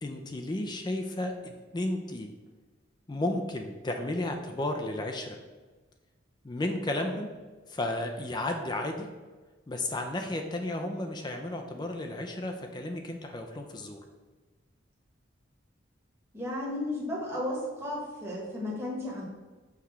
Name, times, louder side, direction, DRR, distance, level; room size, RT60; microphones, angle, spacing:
voice 1, 0.0-2.3 3.1-5.4 6.4-7.3 7.7-9.1 9.7-14.0, left 1 dB, 20° left, 4 dB, 0.4 m, -33 dB
voice 2, 16.3-19.2, left 1 dB, 15° right, -5 dB, 1.1 m, -34 dB
5.8 x 3.1 x 5.6 m, 1.3 s
head